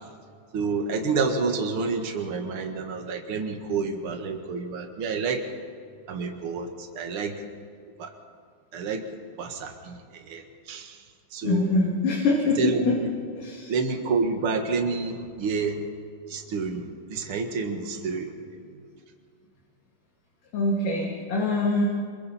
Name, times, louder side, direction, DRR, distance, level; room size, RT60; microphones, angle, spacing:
voice 1, 0.5-5.5 6.1-7.4 8.0-8.1 8.7-9.0 9.4-11.0 11.3-11.8 12.6-13.1 13.7-15.9 16.3-18.7, right 4 dB, 45° right, 4 dB, 1.9 m, -29 dB
voice 2, 11.4-13.0 13.4-13.7 20.5-21.8, left 3 dB, 60° left, -2 dB, 3.8 m, -24 dB
26.5 x 23.5 x 4.4 m, 2.2 s
omnidirectional pair, 4.6 m